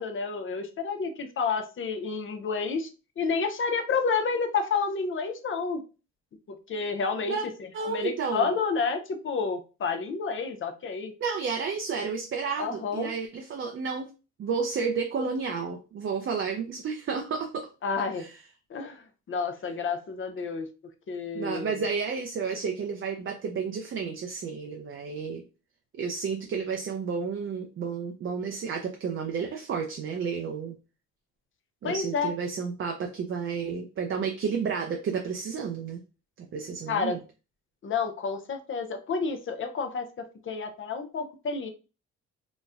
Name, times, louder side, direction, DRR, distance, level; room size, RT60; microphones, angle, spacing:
voice 1, 0.0-2.9 3.2-5.8 6.5-11.1 12.6-13.1 17.8-18.3 18.7-20.7 21.1-21.9 31.8-32.3 36.9-37.2 37.8-41.7, left 5 dB, 40° left, 7 dB, 0.6 m, -30 dB
voice 2, 7.7-8.5 11.2-14.1 14.4-17.7 18.2-18.3 21.3-25.4 25.9-30.8 31.8-36.0 36.4-37.2, right 5 dB, 40° right, 3 dB, 0.5 m, -31 dB
4.0 x 2.1 x 2.4 m, 0.32 s
cardioid pair, 90°, 30 cm